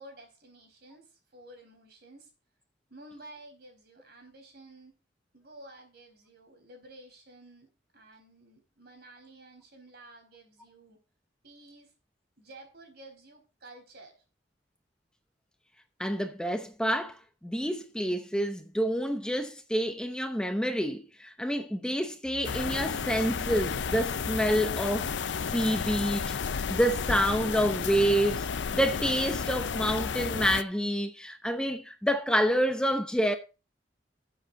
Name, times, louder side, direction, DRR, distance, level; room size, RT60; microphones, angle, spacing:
voice 1, 0.0-2.3 2.9-4.9 5.3-7.7 7.9-11.0 11.4-11.9 12.4-14.1, right 1 dB, 60° right, 4.2 m, -52 dB
voice 2, 16.0-25.1 25.5-33.4, equal, 5° left, 0.7 m, -28 dB
sound 1, 22.2-27.6, right 1 dB, 10° right, 4.5 m, -49 dB
sound 2, 22.4-30.6, left 6 dB, 80° left, 0.5 m, -32 dB
18.5 x 7.6 x 2.7 m
head